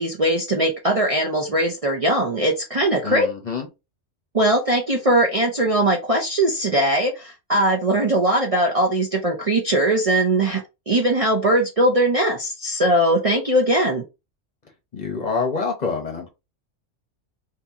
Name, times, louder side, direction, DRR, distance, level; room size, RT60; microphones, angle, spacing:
voice 1, 0.0-3.3 4.3-14.0, right 1 dB, 35° right, 0 dB, 0.6 m, -20 dB
voice 2, 3.0-3.7 14.9-16.3, left 4 dB, 40° left, 2 dB, 0.9 m, -26 dB
2.8 x 2.8 x 3.5 m, 0.25 s
omnidirectional pair, 1.3 m